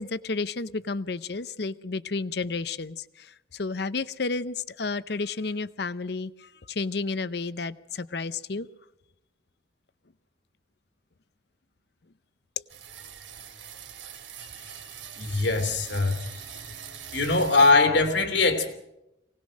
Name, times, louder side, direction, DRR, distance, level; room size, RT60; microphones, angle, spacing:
voice 1, 0.0-8.7, left 3 dB, 60° left, 0.7 m, -31 dB
sound 1, 12.7-17.7, right 8 dB, 90° right, 3.2 m, -43 dB
voice 2, 15.2-16.3 17.1-18.7, left 3 dB, 80° left, 2.9 m, -22 dB
24.0 x 18.5 x 6.4 m
head